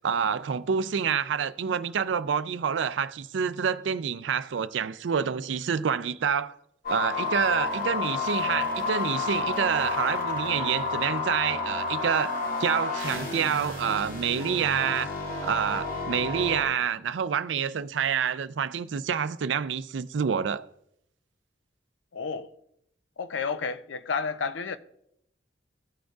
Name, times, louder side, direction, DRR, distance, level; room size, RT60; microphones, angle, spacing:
voice 1, 0.0-6.6 6.9-15.1 15.4-20.7, right 7 dB, 75° right, 0.4 m, -27 dB
sound 1, 6.8-16.6, left 3 dB, 50° left, 1.6 m, -30 dB
voice 2, 22.1-22.5 23.2-24.8, left 5 dB, 80° left, 0.5 m, -31 dB
16.0 x 6.3 x 2.4 m
head